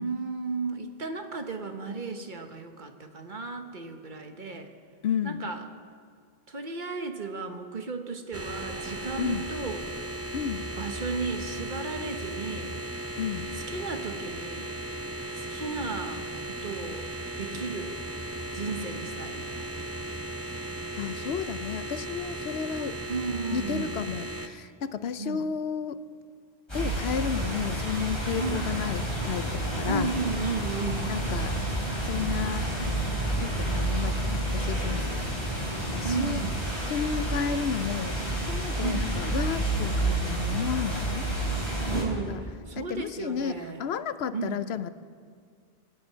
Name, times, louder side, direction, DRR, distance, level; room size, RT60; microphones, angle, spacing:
voice 1, 0.0-4.7 5.2-5.6 6.5-9.9 10.8-12.7 13.7-14.7 15.3-17.1 17.4-18.0 18.5-19.7 23.1-23.9 25.2-25.4 28.4-28.6 29.9-31.1 36.0-36.6 38.8-39.1 41.9-43.8 44.3-44.6, right 4 dB, 50° right, 6 dB, 1.2 m, -34 dB
voice 2, 5.0-5.4 9.2-9.5 10.3-10.7 13.2-13.5 21.0-23.0 23.5-26.0 26.7-30.1 31.1-31.5 32.0-32.7 33.4-35.4 35.9-36.4 36.9-41.3 42.3-42.4 42.8-44.9, left 7 dB, 85° left, 13 dB, 0.9 m, -32 dB
sound 1, 8.3-24.5, right 1 dB, 15° right, 0.6 m, -36 dB
sound 2, 26.7-42.0, right 1 dB, 25° left, 5.4 m, -29 dB
24.5 x 10.5 x 5.6 m, 2.1 s
omnidirectional pair, 1.0 m